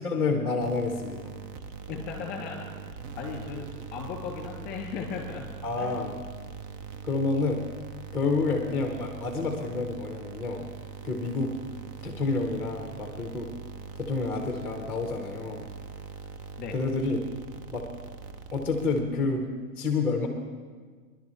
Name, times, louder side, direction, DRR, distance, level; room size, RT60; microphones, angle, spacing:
voice 1, 0.0-1.3 5.6-6.2 7.0-7.7 8.1-10.7 11.0-11.6 12.0-13.5 14.0-15.7 16.7-17.2 17.7-17.9 18.5-20.3, left 3 dB, 5° left, 2 dB, 0.9 m, -29 dB
sound 1, 0.6-19.4, right 6 dB, 35° right, 0.6 m, -42 dB
voice 2, 1.9-2.7 3.1-5.5 5.8-6.0 16.6-16.8, left 6 dB, 20° left, 1 dB, 2.4 m, -37 dB
26.0 x 11.0 x 3.2 m, 1.5 s
supercardioid pair, 155°, 46 cm